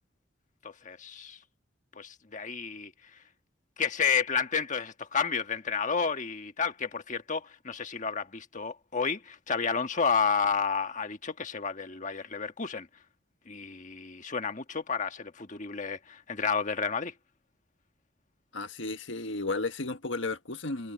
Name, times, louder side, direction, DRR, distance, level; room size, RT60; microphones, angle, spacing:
voice 1, 0.6-1.4 2.0-2.9 3.8-12.9 13.5-16.0 16.3-17.1, left 5 dB, 40° left, 1.5 m, -31 dB
voice 2, 18.5-20.9, left 3 dB, 85° left, 1.6 m, -33 dB
head